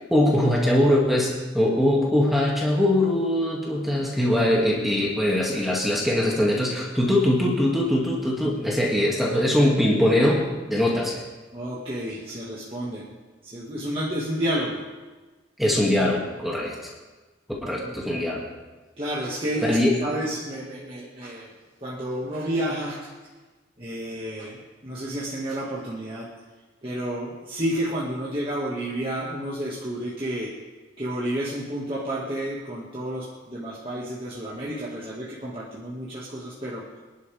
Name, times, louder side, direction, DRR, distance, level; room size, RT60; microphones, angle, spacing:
voice 1, 0.1-10.4 10.7-11.2 15.6-16.7 17.6-18.4 19.6-19.9, left 1 dB, ahead, -4 dB, 2.4 m, -22 dB
voice 2, 11.5-13.1 13.4-14.8 17.8-18.1 19.0-21.5 21.8-23.1 23.8-26.3 26.8-30.5 31.0-36.9, right 1 dB, 30° right, -6 dB, 2.1 m, -30 dB
24.5 x 11.5 x 3.6 m, 1.3 s
head